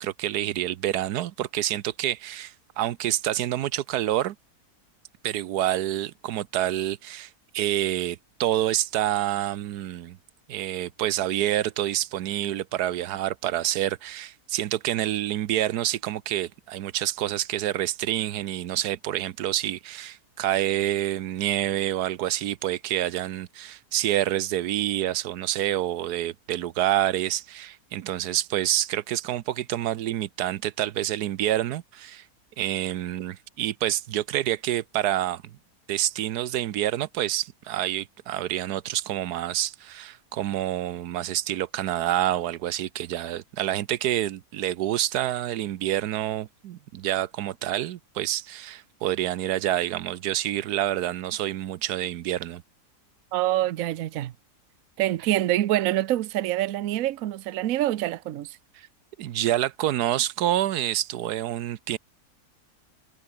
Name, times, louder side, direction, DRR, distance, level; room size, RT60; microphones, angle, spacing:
voice 1, 0.0-4.3 5.2-10.2 10.5-32.2 32.6-35.4 35.9-52.6 58.8-58.9 59.2-62.0, right 12 dB, 85° right, 1.3 m, -27 dB
voice 2, 53.3-54.3 55.0-58.6, right 14 dB, 65° right, 1.1 m, -26 dB
omnidirectional pair, 1.6 m